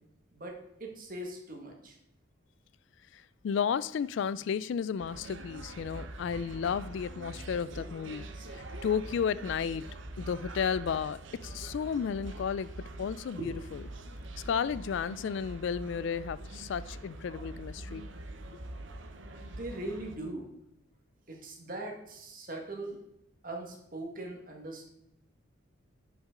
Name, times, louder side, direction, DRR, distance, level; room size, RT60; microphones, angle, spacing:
voice 1, 0.3-2.0 13.3-13.5 19.3-20.5 21.3-23.0 23.4-24.9, right 1 dB, 40° right, 1.7 m, -40 dB
voice 2, 3.1-8.2 8.5-9.8 10.2-12.7 13.0-13.8 14.5-18.0, left 7 dB, 65° left, 0.3 m, -33 dB
sound 1, 5.0-20.2, right 1 dB, 70° right, 0.9 m, -44 dB
11.0 x 5.9 x 3.8 m
head